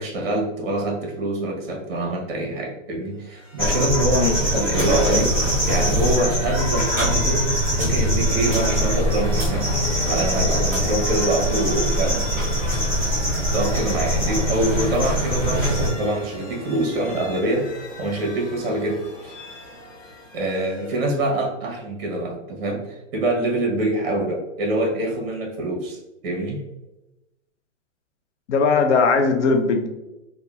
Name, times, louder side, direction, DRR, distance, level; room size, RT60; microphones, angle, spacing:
voice 1, 0.0-5.3 5.7-9.7 10.1-12.2 13.0-13.1 13.5-17.7 18.0-19.4 20.3-26.0 26.2-26.6, right 1 dB, 50° right, 0 dB, 0.8 m, -25 dB
sound 1, 3.1-21.3, left 1 dB, 80° left, 1.1 m, -38 dB
sound 2, 3.6-15.9, equal, 5° right, 1.1 m, -22 dB
voice 2, 28.5-29.9, left 4 dB, 65° left, 6 dB, 0.5 m, -19 dB
2.7 x 2.1 x 2.3 m, 0.97 s
hypercardioid pair, 140°, 39 cm